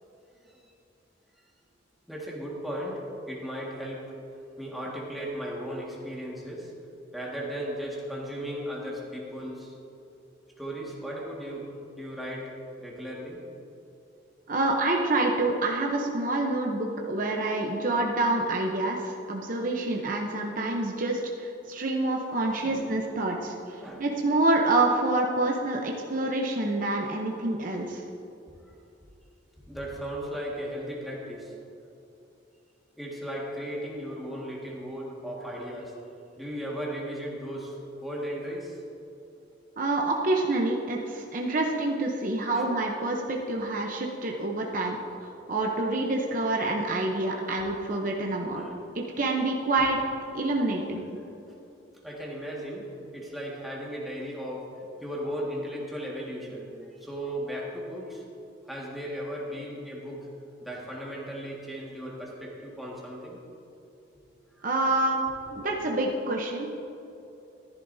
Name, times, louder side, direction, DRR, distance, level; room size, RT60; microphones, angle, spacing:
voice 1, 2.1-4.1 4.6-6.7 7.1-9.7 10.6-11.7 12.0-13.4 22.3-22.9 23.8-24.1 29.7-31.5 33.0-36.0 36.4-38.8 42.5-42.7 45.0-45.1 48.5-49.0 52.0-58.2 58.7-60.3 60.6-63.4 64.6-64.7, equal, ahead, -5 dB, 1.8 m, -36 dB
voice 2, 14.5-28.0 39.8-48.6 48.9-50.0 50.3-51.1 64.6-65.2 65.5-66.8, right 2 dB, 45° right, 0 dB, 0.8 m, -27 dB
14.0 x 11.0 x 2.7 m, 2.8 s
head